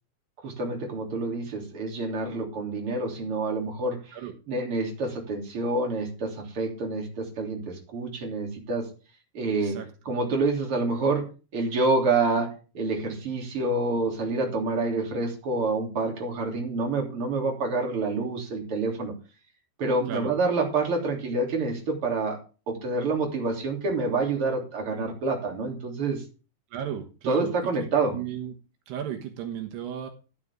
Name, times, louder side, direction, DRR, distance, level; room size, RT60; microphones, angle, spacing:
voice 1, 0.4-4.2 4.5-8.9 9.3-9.8 10.1-11.3 11.5-12.5 12.7-19.1 19.8-22.4 22.7-26.2 27.3-28.2, right 3 dB, 35° right, 0 dB, 3.7 m, -27 dB
voice 2, 26.7-27.7 28.1-28.5 28.9-30.1, right 9 dB, 80° right, 5 dB, 3.4 m, -34 dB
12.5 x 9.6 x 3.7 m, 0.34 s
omnidirectional pair, 4.7 m